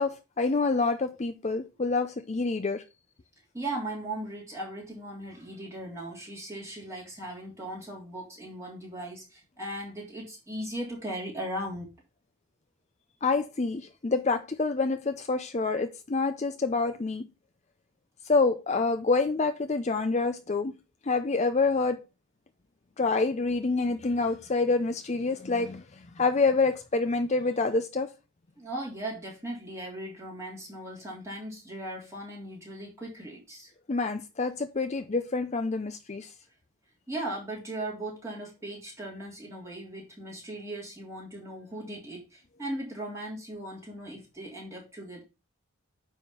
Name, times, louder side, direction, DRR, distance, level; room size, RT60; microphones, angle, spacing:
voice 1, 0.0-2.8 13.2-17.3 18.2-20.7 21.0-22.0 23.0-28.1 33.9-36.3, left 3 dB, 30° left, 0.5 m, -27 dB
voice 2, 3.5-11.9 28.6-33.7 37.1-45.2, right 1 dB, 15° right, 3.3 m, -38 dB
9.4 x 3.6 x 5.5 m
head